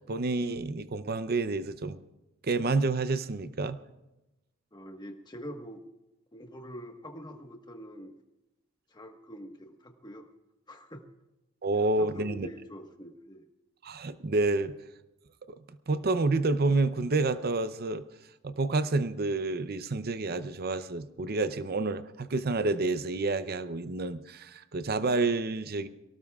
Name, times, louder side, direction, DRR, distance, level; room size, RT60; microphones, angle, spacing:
voice 1, 0.0-2.0 2.4-3.8 11.6-12.5 13.8-14.7 15.5-15.6 15.9-18.0 18.4-25.9, right 3 dB, 45° right, 12 dB, 0.6 m, -29 dB
voice 2, 4.7-5.8 6.3-8.1 8.9-10.3 10.7-11.0 12.0-13.4, equal, 20° left, 4 dB, 1.3 m, -45 dB
24.0 x 18.0 x 2.4 m, 0.97 s
head